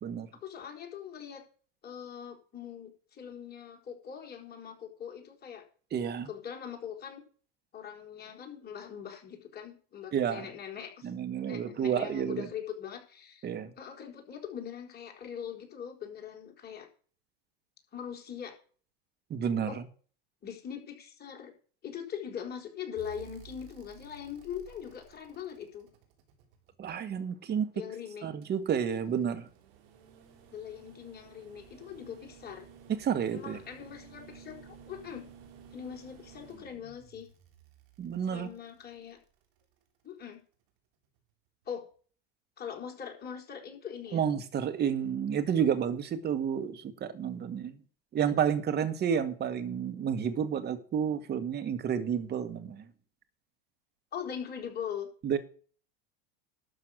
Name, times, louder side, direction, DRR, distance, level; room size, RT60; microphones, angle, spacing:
voice 1, 0.4-1.4 1.8-5.6 6.3-7.2 7.7-11.1 11.5-13.5 13.8-16.9 17.9-18.5 19.7-19.8 20.4-21.5 21.8-25.9 27.7-28.3 30.5-32.6 33.3-35.3 35.7-37.3 38.3-39.2 40.0-40.4 41.7-41.9 42.6-44.2 54.1-55.1, left 8 dB, 30° left, 4.2 m, -41 dB
voice 2, 5.9-6.3 10.1-10.5 11.0-12.5 13.4-13.7 19.3-19.7 26.8-27.7 28.2-29.5 32.9-33.6 38.0-38.5 44.1-47.8 48.1-52.9 55.2-55.4, right 8 dB, 35° right, 1.9 m, -30 dB
sound 1, 23.0-27.1 28.4-39.6 41.2-41.3, right 8 dB, 65° right, 3.7 m, -55 dB
12.0 x 6.8 x 6.4 m
hypercardioid pair, 105°, 30 cm